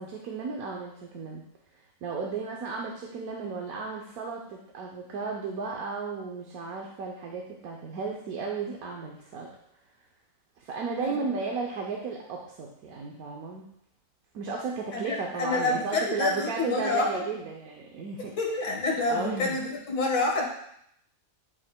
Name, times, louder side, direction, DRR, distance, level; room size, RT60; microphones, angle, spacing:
voice 1, 0.0-1.4 2.0-9.5 10.6-13.7 14.3-18.4 19.1-19.6, right 4 dB, 75° right, 0 dB, 1.2 m, -34 dB
voice 2, 14.9-17.2 18.2-20.4, left 3 dB, 55° left, -1 dB, 1.8 m, -28 dB
11.0 x 5.0 x 2.2 m, 0.73 s
omnidirectional pair, 1.5 m